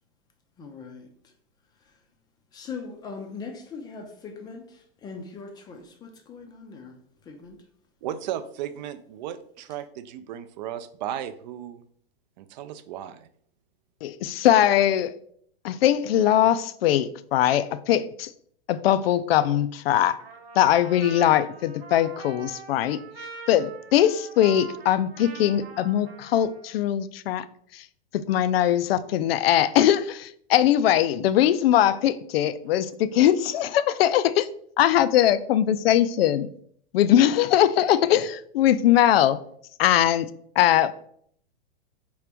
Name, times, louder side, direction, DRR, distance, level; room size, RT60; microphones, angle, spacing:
voice 1, 0.6-1.3 1.8-2.0 2.5-7.0 7.2-7.7, left 4 dB, 15° left, 0.4 m, -41 dB
voice 2, 8.0-11.8 12.4-13.3 33.1-33.2, right 10 dB, 50° right, 0.4 m, -35 dB
voice 3, 14.0-15.1 15.6-18.3 18.7-20.2 20.6-23.0 23.5-27.4 27.7-27.8 28.1-34.5 34.8-36.5 36.9-39.4 39.8-40.3 40.6-40.9, left 11 dB, 75° left, 0.4 m, -21 dB
Trumpet, 20.2-26.8, right 6 dB, 85° right, 0.9 m, -43 dB
4.8 x 3.1 x 3.4 m
hypercardioid pair, 140°, 30 cm